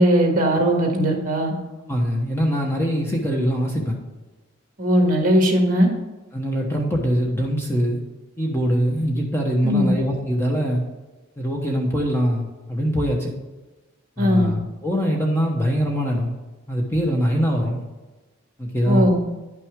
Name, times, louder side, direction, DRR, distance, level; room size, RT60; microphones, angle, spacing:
voice 1, 0.0-1.5 4.8-5.9 9.6-9.9 14.2-14.5 18.9-19.2, equal, 40° right, 1 dB, 1.8 m, -18 dB
voice 2, 1.9-4.0 6.3-8.0 8.4-10.8 11.4-13.3 14.2-16.3 16.7-17.8 18.6-19.1, equal, 10° left, -1 dB, 1.1 m, -23 dB
10.5 x 5.9 x 3.7 m, 1.2 s
head